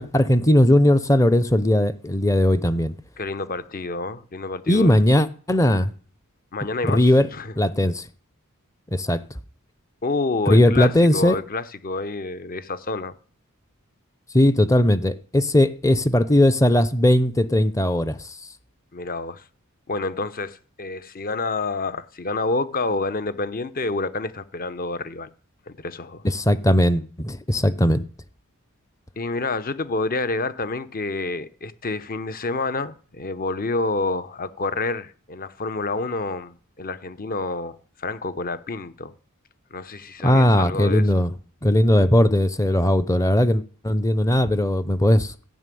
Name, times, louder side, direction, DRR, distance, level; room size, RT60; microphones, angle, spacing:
voice 1, 0.0-2.9 4.7-5.9 6.9-7.3 7.6-8.0 8.9-9.2 10.5-11.4 14.3-18.4 26.2-28.0 40.2-41.3 41.6-45.3, left 1 dB, 15° left, 0.7 m, -18 dB
voice 2, 3.2-5.0 6.5-7.1 7.3-7.5 10.0-13.1 18.9-19.4 19.9-25.3 25.7-26.2 29.2-39.1 39.7-41.1, left 3 dB, 40° left, 1.0 m, -28 dB
15.0 x 6.1 x 9.3 m
head